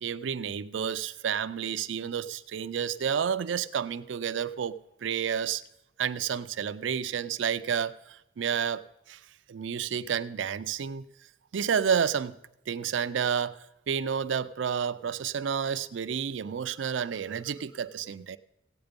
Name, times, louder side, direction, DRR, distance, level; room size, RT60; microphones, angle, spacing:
voice 1, 0.0-5.6 6.0-9.2 9.5-11.0 11.5-12.3 12.7-13.5 13.9-18.4, right 7 dB, 85° right, 14 dB, 0.4 m, -30 dB
15.5 x 8.8 x 5.2 m, 0.88 s
head